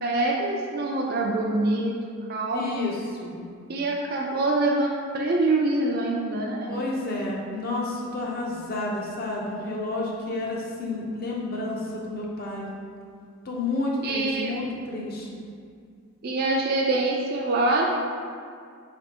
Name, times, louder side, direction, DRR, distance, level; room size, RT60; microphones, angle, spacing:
voice 1, 0.0-1.9 2.3-2.8 3.7-6.8 14.0-14.6 16.2-17.9, right 2 dB, 45° right, -2 dB, 0.4 m, -25 dB
voice 2, 2.5-3.4 6.7-12.7 13.4-15.4, left 2 dB, 45° left, -2 dB, 0.6 m, -30 dB
4.1 x 3.3 x 2.8 m, 2.2 s
head